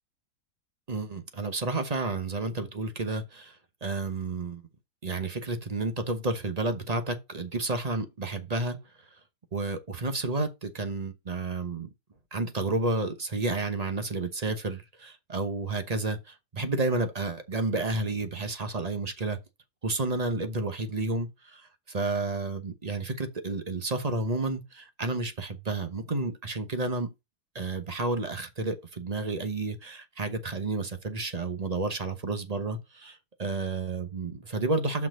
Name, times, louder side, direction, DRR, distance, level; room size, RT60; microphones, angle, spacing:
voice 1, 0.9-4.6 5.0-8.8 9.5-11.9 12.3-19.4 19.8-27.1 27.5-35.1, right 3 dB, 30° right, 0.9 m, -31 dB
5.9 x 4.6 x 6.3 m
omnidirectional pair, 1.7 m